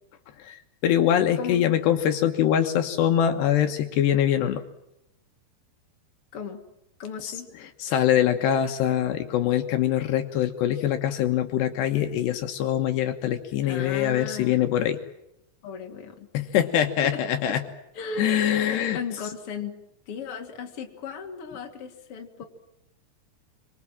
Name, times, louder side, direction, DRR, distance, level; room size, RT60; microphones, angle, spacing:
voice 1, 0.4-4.6 7.2-7.4 7.8-15.0 16.3-17.6 18.2-19.0, left 10 dB, 75° left, 6 dB, 3.3 m, -23 dB
voice 2, 7.0-7.5 13.6-14.7 15.6-16.3 17.0-17.2 17.9-18.7 18.9-19.7 20.1-22.4, left 5 dB, 35° left, 3 dB, 3.1 m, -36 dB
26.5 x 24.5 x 7.6 m, 0.85 s
omnidirectional pair, 5.1 m